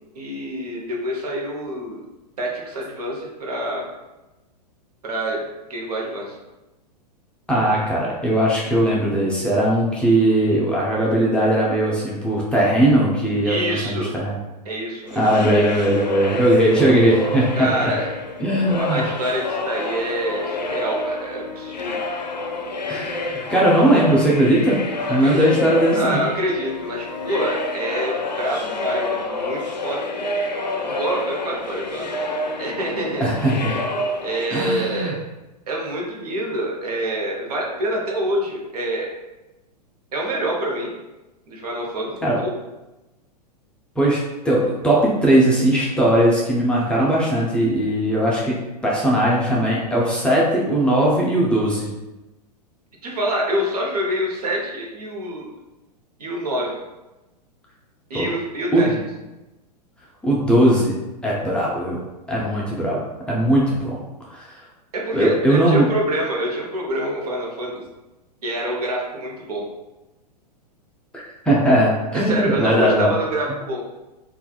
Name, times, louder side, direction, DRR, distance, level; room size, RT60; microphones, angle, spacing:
voice 1, 0.1-2.0 2.4-3.9 5.0-6.3 13.4-14.1 14.6-15.3 17.5-18.1 18.7-22.0 25.1-25.4 26.0-30.0 30.8-32.2 32.6-33.3 34.2-35.1 35.7-39.1 40.1-40.9 41.5-42.5 53.0-55.5 56.2-56.8 58.1-59.0 64.9-67.8 68.4-69.6 72.1-73.8, right 1 dB, 65° right, -1 dB, 0.8 m, -26 dB
voice 2, 7.5-14.4 15.2-17.9 18.4-19.0 22.9-24.8 25.1-26.2 33.2-33.8 34.5-35.1 42.2-42.4 44.0-51.9 58.1-58.3 58.7-59.0 60.2-60.9 61.2-62.0 62.3-64.0 64.3-64.6 65.1-65.9 71.1-73.1, right 1 dB, 5° left, -6 dB, 0.4 m, -19 dB
sound 1, 15.1-34.5, left 2 dB, 85° left, 0.4 m, -28 dB
3.3 x 2.3 x 2.2 m, 1.0 s
figure-of-eight pair, 100°, 21 cm